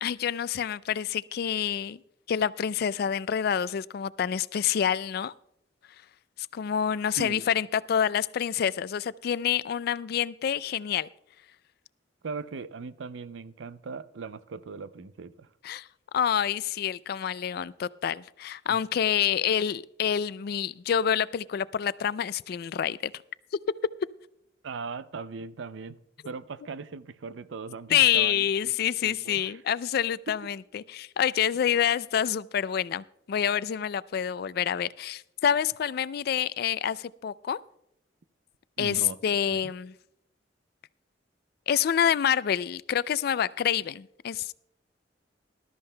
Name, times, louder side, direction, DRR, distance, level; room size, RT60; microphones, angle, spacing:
voice 1, 0.0-2.0 2.3-5.3 6.5-11.1 15.6-15.9 16.1-23.1 27.9-37.6 38.8-39.9 41.7-44.5, left 9 dB, 55° left, 0.3 m, -27 dB
voice 2, 12.2-15.5 18.7-18.8 24.6-28.7 29.0-29.6 30.3-30.4 38.8-39.2 39.5-39.6, right 4 dB, 90° right, 0.5 m, -39 dB
19.5 x 12.5 x 2.2 m
head